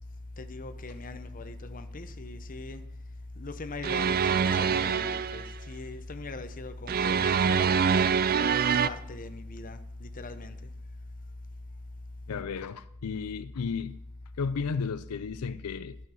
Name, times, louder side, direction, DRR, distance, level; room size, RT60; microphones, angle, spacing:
voice 1, 0.4-2.8 3.4-8.0 8.6-10.7, left 2 dB, 40° left, 0.8 m, -40 dB
sound 1, 3.8-5.5 6.9-8.9, right 6 dB, 40° right, 0.4 m, -25 dB
voice 2, 12.3-14.0 14.4-16.0, left 5 dB, 85° left, 0.4 m, -33 dB
12.0 x 7.1 x 6.3 m
head